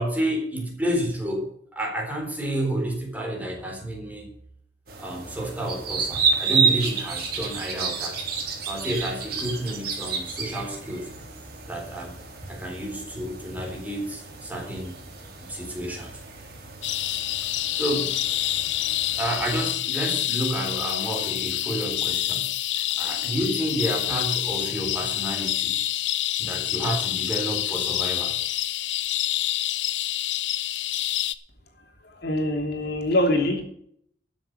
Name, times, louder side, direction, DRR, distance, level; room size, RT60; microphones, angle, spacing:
voice 1, 0.0-4.3 5.0-8.2 8.7-11.1 11.7-12.2 12.4-15.0 15.4-16.1 17.7-18.2 19.2-25.8 26.4-28.4, right 1 dB, 10° right, 4.0 m, -30 dB
sound 1, 4.9-19.6, right 5 dB, 55° right, 3.6 m, -31 dB
sound 2, 16.8-31.3, left 13 dB, 85° left, 0.7 m, -27 dB
voice 2, 32.0-33.6, left 1 dB, 60° left, 3.1 m, -24 dB
13.0 x 7.4 x 6.8 m
head